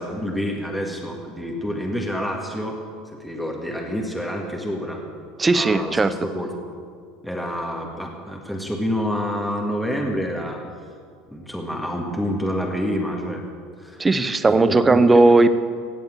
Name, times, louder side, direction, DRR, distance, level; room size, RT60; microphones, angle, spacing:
voice 1, 0.0-2.8 3.1-5.0 5.5-6.5 7.2-10.6 11.3-13.4 13.8-14.0 14.4-15.2, equal, ahead, 0 dB, 1.9 m, -28 dB
voice 2, 5.4-6.1 14.0-15.5, right 3 dB, 15° right, 12 dB, 0.7 m, -16 dB
17.0 x 7.7 x 7.6 m, 2.1 s
supercardioid pair, 110°, 0 cm